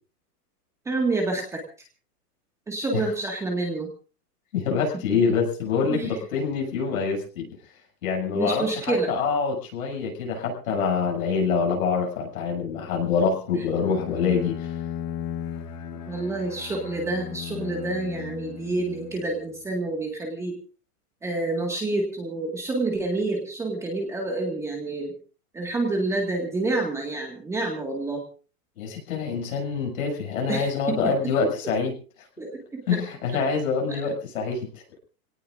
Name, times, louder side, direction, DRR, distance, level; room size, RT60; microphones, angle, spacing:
voice 1, 0.9-1.6 2.7-3.9 5.1-5.2 5.9-6.2 8.3-9.1 16.1-20.6 21.2-25.1 25.5-28.2 30.5-31.3 32.4-33.0 33.9-34.0, right 2 dB, 5° right, 0 dB, 1.8 m, -28 dB
voice 2, 4.5-7.5 8.0-14.7 28.8-31.9 32.9-34.7, left 5 dB, 60° left, 1 dB, 7.2 m, -25 dB
Bowed string instrument, 13.8-19.6, left 10 dB, 25° left, 1.2 m, -36 dB
27.5 x 18.5 x 2.6 m, 0.36 s
supercardioid pair, 175°, 46 cm